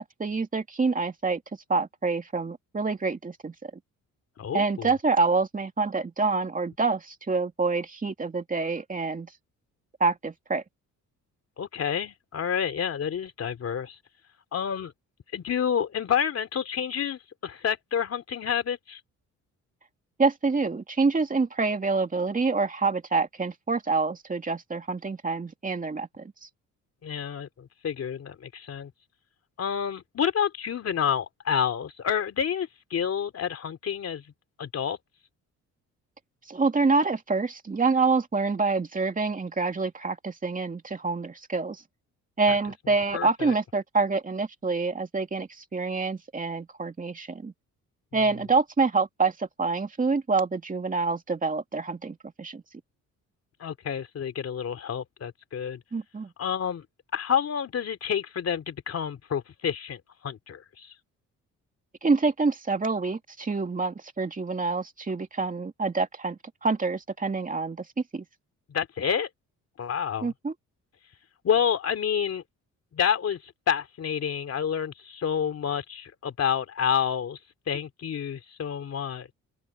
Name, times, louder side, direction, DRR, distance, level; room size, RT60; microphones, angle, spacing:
voice 1, 0.0-1.4 1.7-3.5 4.5-9.3 10.0-10.6 20.2-26.3 36.5-41.8 42.4-47.5 48.1-52.6 55.9-56.3 62.0-67.9 68.1-68.2 70.2-70.5, right 4 dB, 25° right, 2.7 m, -27 dB
voice 2, 4.4-4.9 11.6-14.0 14.5-14.9 15.3-19.0 27.0-28.9 29.6-34.2 34.6-35.0 42.5-42.6 43.1-43.5 53.6-55.8 56.4-56.8 57.1-60.9 68.7-69.3 69.8-70.3 71.4-72.4 72.9-77.4 77.7-79.3, left 8 dB, 55° left, 3.1 m, -29 dB
cardioid pair, 90°, 30 cm